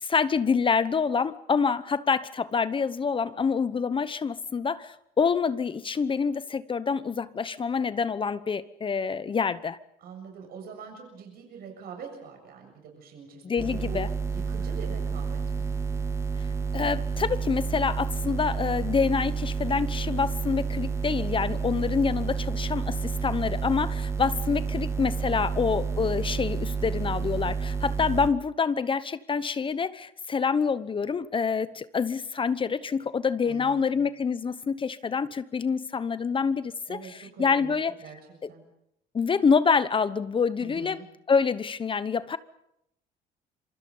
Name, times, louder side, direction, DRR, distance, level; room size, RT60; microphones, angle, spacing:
voice 1, 0.0-9.8 13.4-14.1 16.7-37.9 38.4-38.5 39.1-41.0 41.3-42.4, left 5 dB, 30° left, 15 dB, 1.0 m, -26 dB
voice 2, 10.0-14.0 14.3-15.7 24.6-25.5 33.4-34.0 36.9-38.2 38.5-38.6 40.6-41.1, right 6 dB, 65° right, 3 dB, 7.2 m, -44 dB
sound 1, 13.6-28.3, right 5 dB, 15° right, 1.9 m, -30 dB
27.0 x 24.0 x 5.6 m, 0.78 s
cardioid pair, 110°, 17 cm